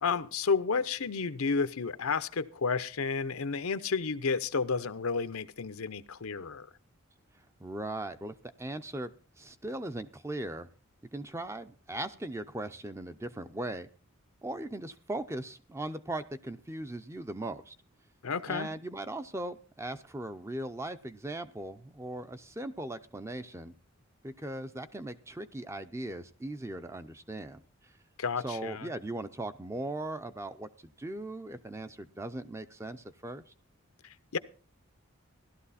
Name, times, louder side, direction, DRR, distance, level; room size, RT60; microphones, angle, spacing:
voice 1, 0.0-6.7 18.2-18.7 28.2-28.9 34.0-34.4, left 5 dB, 80° left, 13 dB, 0.8 m, -31 dB
voice 2, 7.6-10.7 11.1-13.9 14.4-17.7 18.5-23.7 24.2-27.9 28.4-33.5, right 1 dB, 15° right, 10 dB, 0.5 m, -39 dB
15.5 x 12.0 x 4.2 m, 0.38 s
head